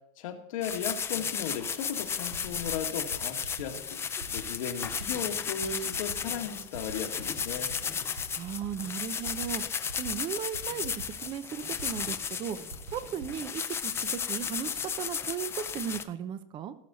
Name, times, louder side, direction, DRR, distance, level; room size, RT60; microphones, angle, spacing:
voice 1, 0.2-4.0 4.3-7.7, left 7 dB, 80° left, 3 dB, 2.0 m, -36 dB
sound 1, 0.6-16.0, left 7 dB, 15° left, 0.5 m, -34 dB
sound 2, 2.0-12.2 12.6-13.4, right 2 dB, 90° right, 3.1 m, -46 dB
voice 2, 8.4-9.6 10.0-12.6 12.9-16.7, right 8 dB, 30° right, 13 dB, 0.7 m, -36 dB
17.5 x 6.2 x 4.1 m, 0.79 s
supercardioid pair, 150°, 17 cm